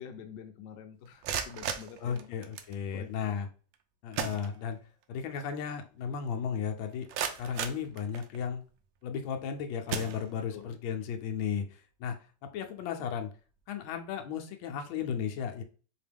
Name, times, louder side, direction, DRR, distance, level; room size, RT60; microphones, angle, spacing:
voice 1, 0.0-2.3 2.9-3.3 10.5-10.7, left 7 dB, 70° left, 1.2 m, -46 dB
sound 1, 1.0-2.8 3.7-3.8 4.1-5.0 5.4-5.5 6.0-6.1 6.7-8.6 9.2-9.4 9.9-10.7, right 8 dB, 75° right, 1.2 m, -37 dB
voice 2, 2.0-3.5 4.0-4.8 5.1-7.1 7.4-8.6 9.0-12.2 12.5-13.3 13.7-15.6, left 7 dB, 90° left, 1.4 m, -35 dB
4.5 x 2.9 x 3.4 m
omnidirectional pair, 2.2 m